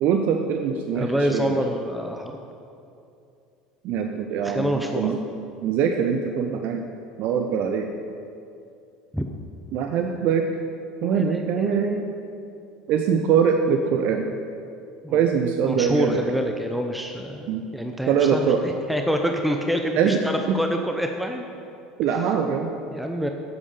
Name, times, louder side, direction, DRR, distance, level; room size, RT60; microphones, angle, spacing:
voice 1, 0.0-1.6 3.8-5.2 5.6-6.8 7.2-7.9 9.7-10.5 11.0-12.0 12.9-14.3 15.1-16.2 17.5-17.6 18.1-18.6 20.0-20.2 20.5-20.6 22.0-22.7, right 7 dB, 50° right, 5 dB, 0.6 m, -23 dB
voice 2, 1.0-2.3 4.4-5.2 9.1-9.3 11.0-12.2 15.0-15.2 15.7-21.5 22.9-23.3, equal, ahead, 3 dB, 0.8 m, -27 dB
8.9 x 8.5 x 6.6 m, 2.6 s
figure-of-eight pair, 70°, 3 cm